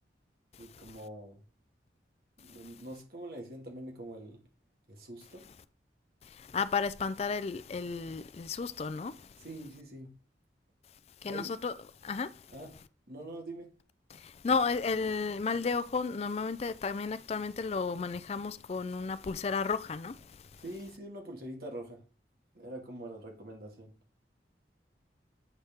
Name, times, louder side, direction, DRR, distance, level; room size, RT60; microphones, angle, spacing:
voice 1, 0.6-1.4 2.4-4.4 4.9-5.4 9.4-10.1 11.3-11.5 12.5-12.7 13.1-13.7 20.6-22.0 22.5-23.9, right 1 dB, 60° right, 1.8 m, -44 dB
voice 2, 6.2-9.3 11.2-11.7 12.0-12.4 14.1-20.6, left 5 dB, 35° left, 0.3 m, -33 dB
8.0 x 4.3 x 3.5 m
head